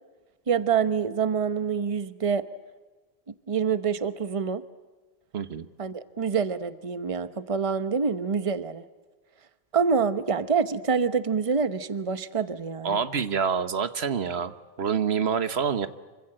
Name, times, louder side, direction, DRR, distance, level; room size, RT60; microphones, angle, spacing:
voice 1, 0.5-2.4 3.5-4.6 5.8-8.8 9.7-13.0, right 6 dB, 35° right, 12 dB, 1.0 m, -26 dB
voice 2, 5.3-5.7 12.8-14.5 14.8-15.9, right 6 dB, 80° right, 12 dB, 1.3 m, -26 dB
26.5 x 25.0 x 7.7 m, 1.3 s
omnidirectional pair, 1.1 m